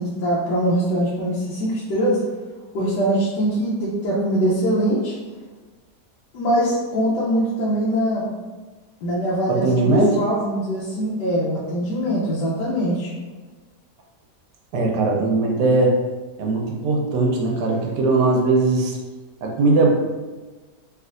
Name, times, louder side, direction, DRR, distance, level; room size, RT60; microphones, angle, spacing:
voice 1, 0.0-2.2 2.7-5.1 6.3-8.3 9.0-13.1, right 1 dB, 90° left, -7 dB, 1.3 m, -22 dB
voice 2, 9.5-10.2 14.7-16.0 16.4-19.0 19.4-19.9, right 3 dB, 85° right, -1 dB, 1.2 m, -19 dB
3.3 x 2.9 x 2.5 m, 1.3 s
omnidirectional pair, 1.8 m